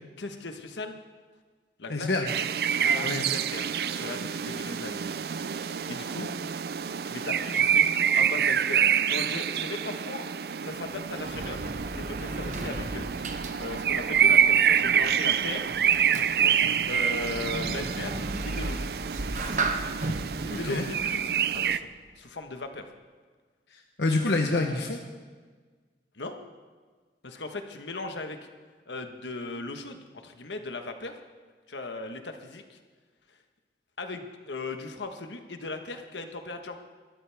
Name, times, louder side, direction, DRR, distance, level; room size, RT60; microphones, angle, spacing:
voice 1, 0.2-1.0 1.8-2.1 2.8-5.0 5.5-6.3 7.1-10.3 10.6-15.7 16.4-18.2 18.4-18.8 20.4-21.9 22.2-22.9 26.1-26.4 27.2-28.4 28.9-31.1 31.7-32.8 34.0-36.8, left 2 dB, 90° left, 5 dB, 1.4 m, -38 dB
voice 2, 1.9-2.3 3.0-3.3 20.5-20.8 23.7-25.0, left 2 dB, 75° left, 2 dB, 1.1 m, -27 dB
sound 1, 2.3-21.8, right 8 dB, 60° right, 0.4 m, -27 dB
Sliding door, 10.7-22.1, right 2 dB, 45° right, 1.0 m, -36 dB
22.0 x 13.5 x 3.6 m, 1.5 s
head